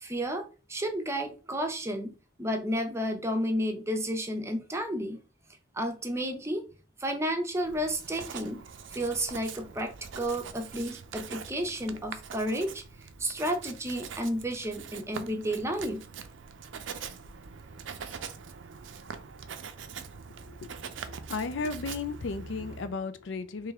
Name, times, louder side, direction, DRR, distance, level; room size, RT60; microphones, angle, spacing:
voice 1, 0.0-2.1 2.4-5.2 5.7-6.6 7.0-8.6 8.9-12.8 13.2-16.0, equal, 15° right, 0.6 m, -31 dB
Writing, 7.6-22.9, right 6 dB, 80° right, 0.5 m, -43 dB
voice 2, 21.0-23.7, left 4 dB, 75° left, 0.4 m, -34 dB
3.4 x 3.1 x 3.5 m
head